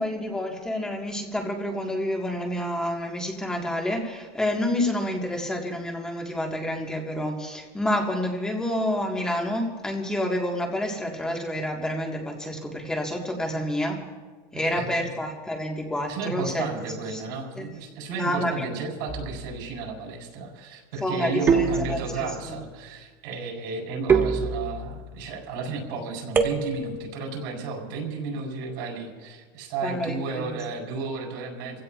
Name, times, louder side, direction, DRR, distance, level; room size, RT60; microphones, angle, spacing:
voice 1, 0.0-14.0 14.5-16.7 17.1-17.2 17.6-17.7 18.1-18.7 21.0-22.6 29.8-30.5, left 1 dB, 5° left, 0 dB, 1.8 m, -28 dB
voice 2, 14.5-15.1 16.1-31.8, right 4 dB, 75° right, 0 dB, 4.7 m, -33 dB
sound 1, 19.1-19.6 21.5-22.4 24.1-25.0 26.3-27.1, right 5 dB, 20° right, 0.8 m, -25 dB
28.0 x 16.5 x 2.5 m, 1.4 s
cardioid pair, 175°, 12 cm